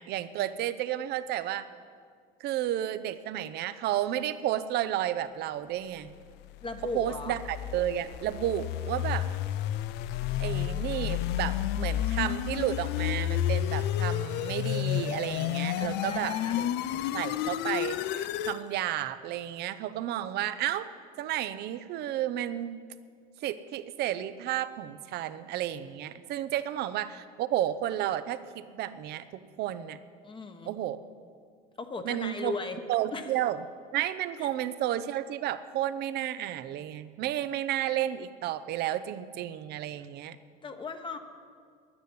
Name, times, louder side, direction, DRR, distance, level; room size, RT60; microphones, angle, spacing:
voice 1, 0.0-1.7 2.4-6.1 6.9-9.3 10.4-16.8 17.1-20.9 21.2-22.8 23.4-30.0 30.6-31.0 32.0-32.5 32.9-33.6 33.9-40.4, right 12 dB, 60° right, 13 dB, 0.7 m, -32 dB
sound 1, 6.4-18.6, left 12 dB, 65° left, 0.5 m, -31 dB
voice 2, 6.6-7.4 15.8-16.6 30.2-30.7 31.8-32.8 33.1-33.3 34.4-34.5 40.6-41.2, left 3 dB, 25° left, 6 dB, 1.2 m, -37 dB
10.0 x 9.7 x 9.6 m, 2.1 s
supercardioid pair, 105°, 19 cm